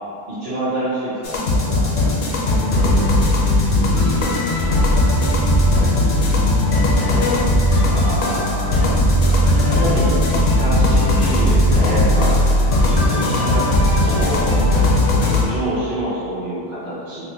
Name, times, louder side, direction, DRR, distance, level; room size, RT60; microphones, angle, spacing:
voice 1, 0.3-1.9 3.7-4.7 6.8-7.3 7.7-12.3 13.0-13.7 14.0-14.7 15.0-17.2, right 1 dB, 50° right, -11 dB, 0.8 m, -27 dB
sound 1, 1.2-15.4, left 1 dB, 60° left, 0.7 m, -17 dB
2.8 x 2.1 x 4.1 m, 2.5 s
omnidirectional pair, 1.1 m